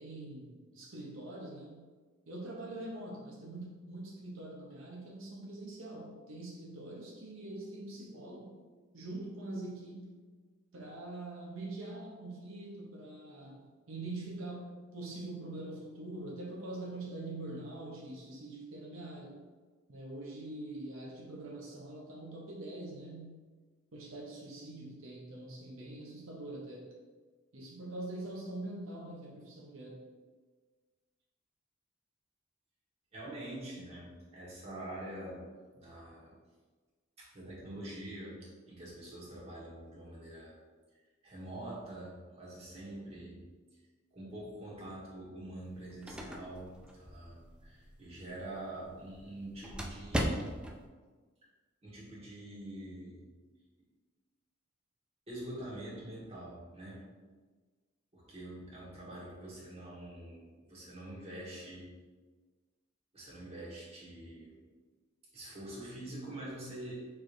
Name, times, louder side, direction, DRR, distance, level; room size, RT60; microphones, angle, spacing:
voice 1, 0.0-1.9 2.3-8.6 8.9-10.1 10.7-19.4 19.9-23.5 23.9-26.9 27.5-30.0, right 2 dB, 75° right, -3 dB, 0.7 m, -44 dB
voice 2, 33.1-35.5 35.7-36.3 37.2-40.6 41.2-43.4 44.1-50.5 51.8-53.3 55.3-57.1 58.1-61.9 63.1-64.6 65.3-67.1, right 1 dB, 30° right, -7 dB, 1.4 m, -45 dB
sound 1, 45.6-50.9, equal, 5° right, 0.3 m, -40 dB
5.9 x 3.3 x 2.5 m, 1.4 s
head